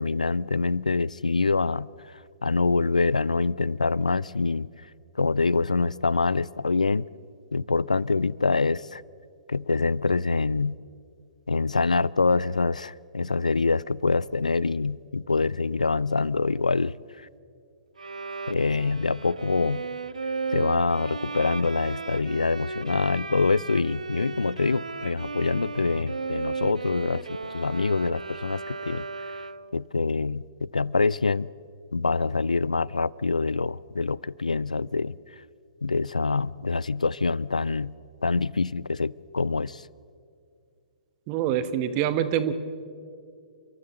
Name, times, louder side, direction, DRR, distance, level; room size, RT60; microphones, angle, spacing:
voice 1, 0.0-4.7 5.2-7.1 7.5-9.0 9.5-10.8 11.5-16.9 18.5-19.8 20.5-27.2 27.5-29.1 29.7-30.4 30.7-31.5 31.9-35.1 35.8-37.9 38.2-39.8, left 4 dB, 80° left, 23 dB, 0.4 m, -25 dB
Bowed string instrument, 18.0-29.8, right 4 dB, 75° right, 0.6 m, -35 dB
voice 2, 41.3-42.5, right 10 dB, 35° right, 12 dB, 1.3 m, -25 dB
30.0 x 13.5 x 7.7 m, 2.3 s
figure-of-eight pair, 115°, 4 cm